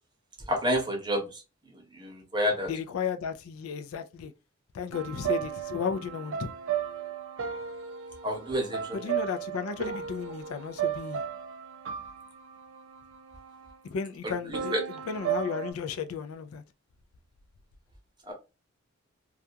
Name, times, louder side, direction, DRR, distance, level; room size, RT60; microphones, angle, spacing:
voice 1, 0.5-1.4 1.7-2.7 8.2-9.1 14.2-14.8 18.3-18.4, equal, 20° right, 0.7 m, -30 dB
voice 2, 2.7-4.3 4.7-6.5 8.9-11.2 13.9-14.8 15.1-16.6, left 6 dB, 90° left, 0.4 m, -34 dB
sound 1, 4.9-13.8 14.5-15.7, right 9 dB, 65° right, 0.4 m, -35 dB
2.4 x 2.2 x 2.7 m
head